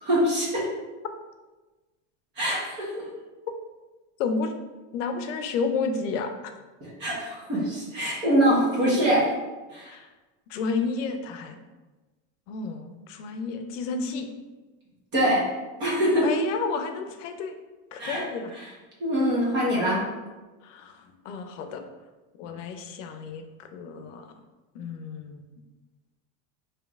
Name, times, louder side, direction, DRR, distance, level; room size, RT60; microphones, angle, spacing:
voice 1, 0.0-0.7 2.4-2.9 6.8-9.2 9.7-9.9 15.1-15.4 15.8-16.3 18.0-18.2 18.5-18.7 19.0-20.0, equal, 30° right, -5 dB, 1.1 m, -24 dB
voice 2, 4.2-4.5 4.9-6.5 9.9-10.1 10.5-11.6 12.5-14.3 16.2-17.5 17.9-18.5 20.6-21.8 22.4-24.3 24.7-25.4, left 4 dB, 85° left, 6 dB, 0.6 m, -31 dB
5.2 x 2.8 x 2.4 m, 1.2 s
supercardioid pair, 170°, 37 cm